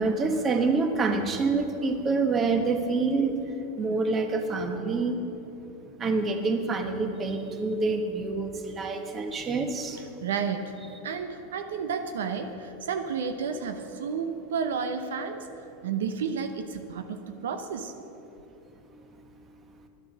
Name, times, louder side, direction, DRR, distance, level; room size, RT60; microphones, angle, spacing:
voice 1, 0.0-3.4 3.8-5.2 6.0-10.0, right 3 dB, 25° right, 6 dB, 1.2 m, -27 dB
voice 2, 10.2-10.7 11.0-15.5 15.8-17.9, right 6 dB, 85° right, 7 dB, 0.8 m, -31 dB
10.5 x 9.7 x 6.3 m, 2.9 s
supercardioid pair, 120°, 0 cm